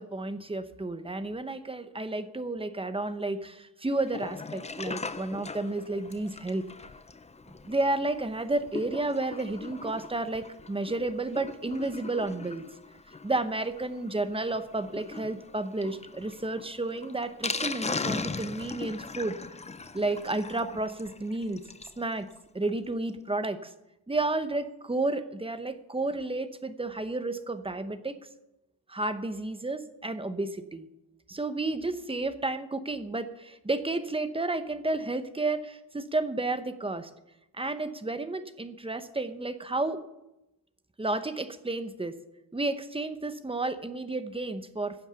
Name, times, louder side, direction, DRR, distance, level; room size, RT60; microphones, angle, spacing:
voice 1, 0.0-6.6 7.6-12.7 13.2-19.4 19.9-21.6 22.0-22.3 22.5-23.7 24.1-28.2 28.9-30.9 31.3-37.1 37.5-40.0 41.0-42.2 42.5-45.0, right 2 dB, 15° right, 10 dB, 0.8 m, -31 dB
Sink (filling or washing), 4.0-22.0 22.4-22.5 22.6-22.7 23.1-23.2, left 4 dB, 15° left, 0.5 m, -39 dB
15.0 x 7.9 x 6.9 m, 0.92 s
wide cardioid pair, 135°, 43 cm